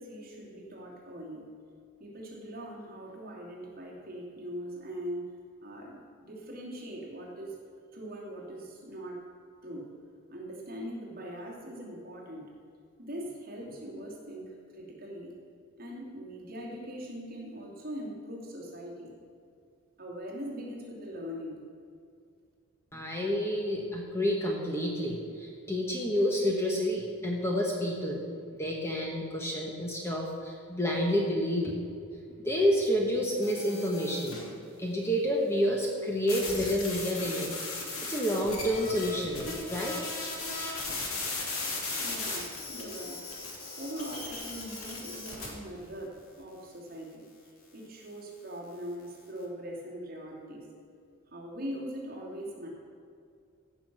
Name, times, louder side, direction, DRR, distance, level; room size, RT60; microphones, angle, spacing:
voice 1, 0.0-1.5 2.0-5.2 5.6-7.5 7.9-9.2 9.6-9.9 10.3-12.5 13.0-15.3 15.8-19.1 20.0-21.6 42.0-43.3 43.8-47.2 47.7-50.7 51.3-52.7, equal, 40° right, -3 dB, 2.6 m, -41 dB
voice 2, 22.9-28.2 28.6-31.8 32.4-34.4 34.8-37.5 38.0-40.0, equal, 10° left, -1 dB, 1.1 m, -29 dB
sound 1, 33.4-34.5 36.3-45.5, left 3 dB, 85° left, 2.6 m, -37 dB
15.5 x 6.1 x 6.1 m, 2.3 s
head